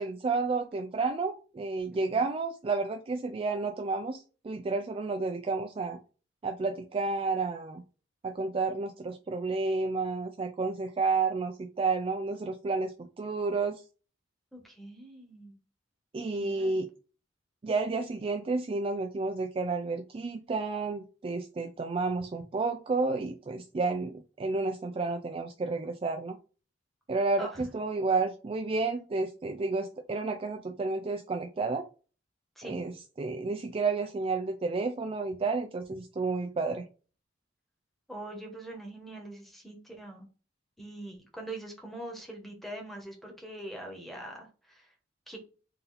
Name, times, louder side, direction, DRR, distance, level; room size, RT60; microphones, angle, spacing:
voice 1, 0.0-6.0 6.4-7.8 8.2-13.8 16.1-16.9 17.6-26.4 27.1-31.9 32.6-36.9, right 3 dB, 30° right, 4 dB, 0.3 m, -31 dB
voice 2, 1.9-2.2 14.5-15.6 16.2-16.8 27.4-27.6 32.6-32.8 38.1-40.3 40.8-44.9 45.3-45.4, right 1 dB, ahead, 1 dB, 1.0 m, -43 dB
3.9 x 2.7 x 3.9 m, 0.35 s
head